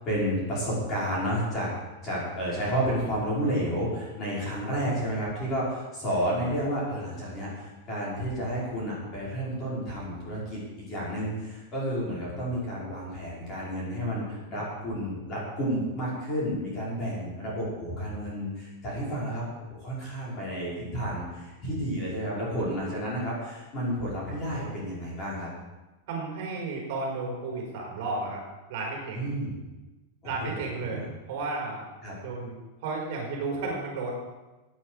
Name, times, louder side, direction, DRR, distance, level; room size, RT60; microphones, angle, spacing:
voice 1, 0.0-1.7 2.0-25.5 29.1-29.5 30.2-31.1 32.0-32.2, equal, 20° left, -7 dB, 5.5 m, -31 dB
voice 2, 26.1-28.4 28.7-29.3 30.2-31.0 31.3-31.9 32.2-32.6 32.8-34.1, right 3 dB, 45° right, -2 dB, 4.7 m, -33 dB
17.0 x 9.3 x 5.1 m, 1.1 s
supercardioid pair, 175°, 0 cm